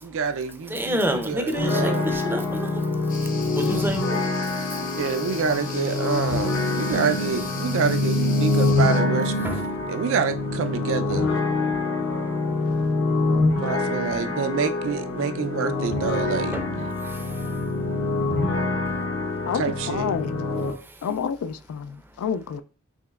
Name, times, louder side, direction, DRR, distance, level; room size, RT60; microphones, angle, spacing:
voice 1, 0.0-2.1 5.0-9.5 9.9-11.3 13.6-16.9 19.5-20.1, right 6 dB, 65° right, 0.4 m, -27 dB
voice 2, 0.7-2.8 3.5-4.2 9.4-9.6 16.5-16.7 17.0-17.2, equal, 10° right, 0.5 m, -28 dB
sound 1, 1.5-20.7, left 2 dB, 65° left, 0.9 m, -25 dB
sound 2, 3.1-9.0, left 6 dB, 40° left, 0.7 m, -40 dB
voice 3, 19.9-20.5 21.0-22.6, left 7 dB, 80° left, 0.3 m, -28 dB
6.2 x 2.9 x 2.3 m
head